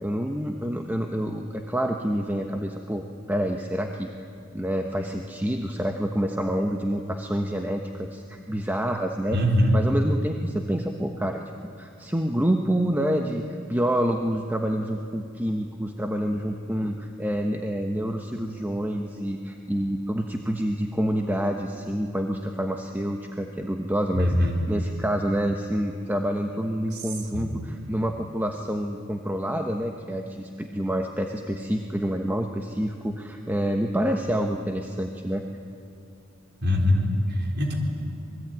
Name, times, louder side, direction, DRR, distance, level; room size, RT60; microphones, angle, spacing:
voice 1, 0.0-4.1 4.5-9.4 9.7-11.4 11.8-24.3 24.7-35.4, equal, 10° right, 3 dB, 1.1 m, -27 dB
voice 2, 9.3-9.8 24.1-24.5 26.9-27.0 27.3-27.5 36.6-37.7, left 1 dB, 55° right, 1 dB, 3.9 m, -22 dB
26.5 x 20.5 x 9.3 m, 2.4 s
head